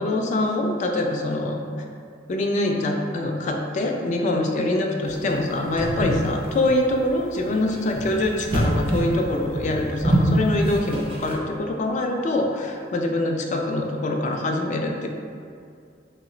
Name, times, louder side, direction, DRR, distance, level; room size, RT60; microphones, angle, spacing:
voice 1, 0.0-1.6 2.3-15.1, left 1 dB, 40° left, 2 dB, 0.3 m, -24 dB
sound 1, 5.1-11.3, right 1 dB, 30° right, 0.4 m, -26 dB
3.0 x 2.0 x 3.7 m, 2.3 s
head